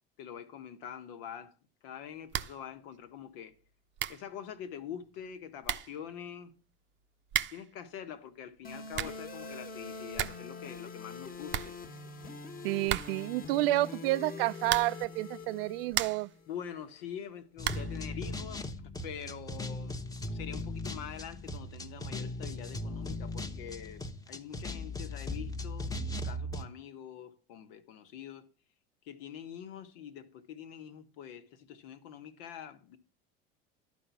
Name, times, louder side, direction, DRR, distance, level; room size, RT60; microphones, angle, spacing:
voice 1, 0.2-1.5 1.8-3.5 4.1-6.5 7.5-11.8 16.5-25.9 26.2-28.5 29.0-33.0, left 9 dB, 75° left, 1.5 m, -45 dB
sound 1, 2.3-2.7 2.9-3.0 3.7-3.8 4.0-4.3 5.3-5.4 5.6-6.0 7.3-7.7 8.7-9.3 9.7-9.8 10.0-10.5 10.8-10.9 11.1-11.2 11.5-12.3 12.9-13.4 14.6-15.1 15.6-16.4 17.6-18.0, right 11 dB, 40° right, 0.7 m, -35 dB
sound 2, 8.6-16.6, left 3 dB, 30° left, 1.5 m, -44 dB
voice 2, 12.6-16.3, right 18 dB, 75° right, 0.5 m, -30 dB
sound 3, 17.6-26.6, left 1 dB, 10° left, 1.1 m, -38 dB
12.0 x 4.7 x 7.1 m
hypercardioid pair, 95°, 29 cm